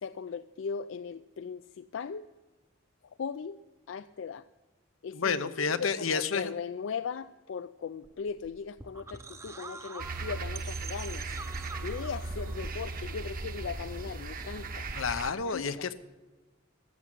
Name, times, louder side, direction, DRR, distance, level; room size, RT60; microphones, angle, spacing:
voice 1, 0.0-2.2 3.2-3.6 3.9-4.4 5.0-11.3 11.8-14.9 15.5-15.9, left 6 dB, 65° left, 13 dB, 0.4 m, -38 dB
voice 2, 5.1-6.5 14.9-15.9, left 5 dB, 85° left, 12 dB, 0.8 m, -30 dB
sound 1, 8.0-14.8, right 3 dB, 15° right, 0.6 m, -46 dB
sound 2, 10.0-15.3, right 3 dB, 45° right, 0.9 m, -37 dB
13.5 x 7.4 x 9.8 m, 1.2 s
head